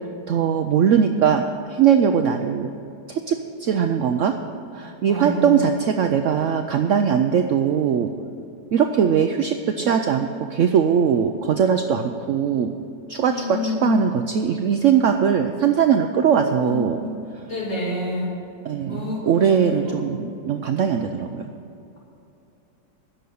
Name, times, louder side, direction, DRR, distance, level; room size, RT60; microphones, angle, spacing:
voice 1, 0.3-2.7 3.1-4.3 4.7-8.1 8.7-12.7 13.1-17.0 18.6-21.4, right 7 dB, 85° right, 6 dB, 0.6 m, -20 dB
voice 2, 5.1-5.6 13.2-14.1 16.6-17.1 17.5-18.3 18.9-19.8, left 2 dB, 45° left, -6 dB, 3.5 m, -28 dB
10.5 x 6.9 x 9.2 m, 2.7 s
omnidirectional pair, 1.9 m